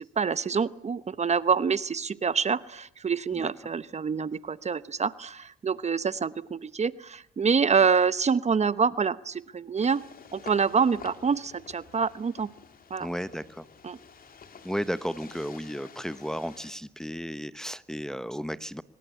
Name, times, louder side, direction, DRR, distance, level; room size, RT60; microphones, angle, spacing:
voice 1, 0.0-10.0 10.3-12.5 12.9-13.1 13.8-14.0, right 5 dB, 35° right, 16 dB, 0.9 m, -26 dB
sound 1, 9.8-16.7, left 5 dB, 45° left, 3.2 m, -49 dB
voice 2, 13.0-13.6 14.6-18.8, equal, 5° left, 14 dB, 0.9 m, -34 dB
25.0 x 22.5 x 8.3 m, 0.74 s
cardioid pair, 90°, 20 cm